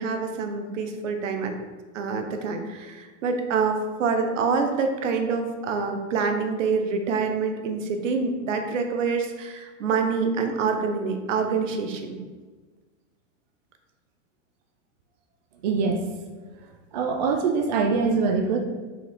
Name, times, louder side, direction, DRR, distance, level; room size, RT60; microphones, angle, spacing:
voice 1, 0.0-1.5 1.9-12.2, right 5 dB, 75° right, 5 dB, 1.0 m, -26 dB
voice 2, 15.6-16.1 16.9-18.6, right 4 dB, 35° right, 3 dB, 0.4 m, -23 dB
5.9 x 4.8 x 3.6 m, 1.3 s
supercardioid pair, 170°, 39 cm